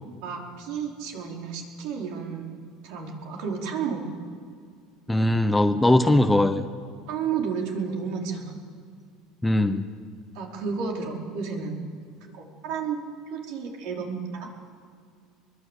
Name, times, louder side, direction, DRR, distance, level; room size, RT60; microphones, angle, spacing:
voice 1, 0.2-2.6 2.8-4.0 7.1-8.5 10.3-11.8 12.3-13.0 13.3-14.5, right 6 dB, 65° right, 0 dB, 4.7 m, -32 dB
voice 2, 5.1-6.7 9.4-9.9, left 1 dB, 5° left, 9 dB, 0.9 m, -20 dB
24.0 x 21.5 x 8.4 m, 2.1 s
cardioid pair, 145°, 0 cm